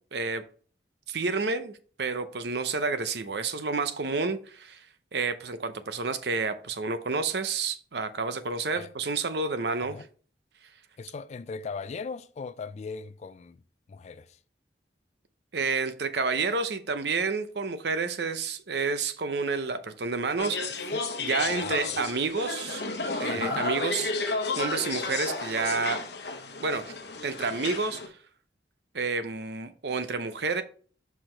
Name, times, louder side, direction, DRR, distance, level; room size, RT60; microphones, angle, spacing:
voice 1, 0.1-0.4 1.1-4.8 5.1-10.0 15.5-20.8 21.2-22.8 23.2-24.1 24.6-26.0 26.6-26.9 27.2-28.2 28.9-30.6, right 4 dB, 60° right, 0.7 m, -29 dB
voice 2, 11.0-13.6 13.9-14.4 20.8-21.1 21.4-22.0 23.3-23.6, left 4 dB, 35° left, 0.3 m, -39 dB
sound 1, 20.4-28.1, left 3 dB, 60° left, 1.0 m, -32 dB
5.8 x 4.9 x 4.4 m
head